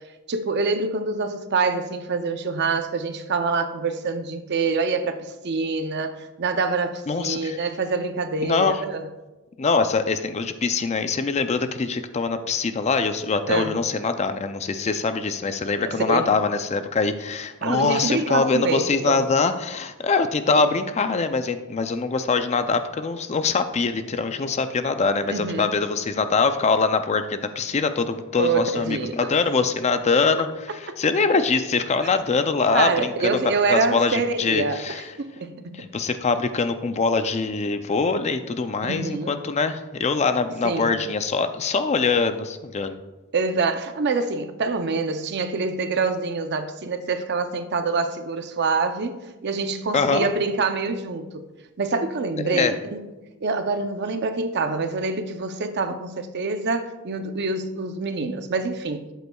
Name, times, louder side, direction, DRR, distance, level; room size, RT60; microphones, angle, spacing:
voice 1, 0.3-9.0 13.5-13.7 15.8-16.3 17.6-19.2 20.5-20.7 25.3-25.7 28.4-29.3 30.9-31.0 32.7-34.8 35.2-35.8 38.8-39.3 40.6-40.9 43.3-51.4 51.8-53.1 53.4-59.1, right 4 dB, 50° right, 0.6 m, -26 dB
voice 2, 7.1-7.6 8.4-8.8 9.6-33.4 33.7-35.0 35.7-43.0 49.9-50.3 52.4-52.7, left 4 dB, 30° left, 0.4 m, -23 dB
12.0 x 8.1 x 2.3 m
head